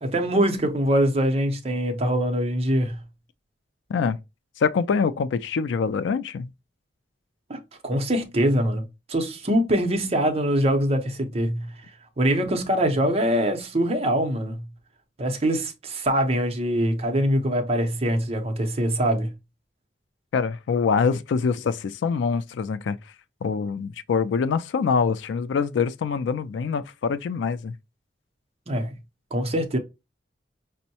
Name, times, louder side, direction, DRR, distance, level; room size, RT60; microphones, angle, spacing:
voice 1, 0.0-3.0 7.5-11.7 12.2-14.6 15.2-19.3 28.7-28.9 29.3-29.8, equal, 35° right, 0.7 m, -23 dB
voice 2, 4.6-6.5 20.3-23.0 23.4-27.7, left 5 dB, 90° left, 0.3 m, -24 dB
5.3 x 2.0 x 2.8 m
head